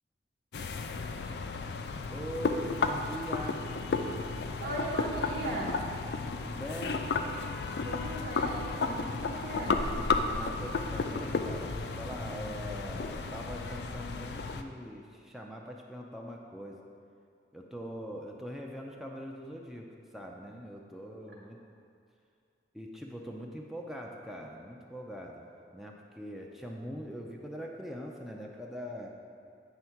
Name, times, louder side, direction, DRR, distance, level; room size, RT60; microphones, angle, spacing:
sound 1, 0.5-14.6, left 4 dB, 60° left, 0.4 m, -33 dB
voice 1, 2.1-3.6 6.3-7.0 10.3-16.8 17.5-19.9 20.1-21.6 22.7-25.4 25.7-29.1, equal, ahead, -1 dB, 0.4 m, -42 dB
voice 2, 4.6-5.8 7.8-9.8, right 1 dB, 75° right, -4 dB, 1.2 m, -37 dB
sound 2, 8.4-13.9, left 1 dB, 80° left, 0.8 m, -44 dB
9.1 x 3.5 x 5.8 m, 2.5 s
head